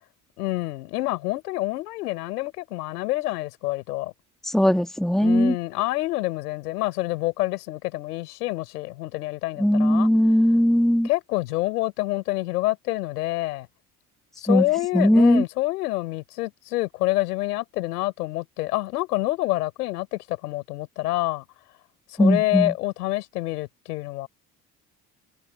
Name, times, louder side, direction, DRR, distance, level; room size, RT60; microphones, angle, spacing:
voice 1, 0.4-4.1 5.2-10.1 11.0-13.7 14.4-21.4 22.2-24.3, left 18 dB, 85° left, 6.6 m, -27 dB
voice 2, 4.5-5.5 9.6-11.1 14.5-14.7 14.9-15.4 22.2-22.7, equal, ahead, 1.9 m, -19 dB
hypercardioid pair, 55°, 46 cm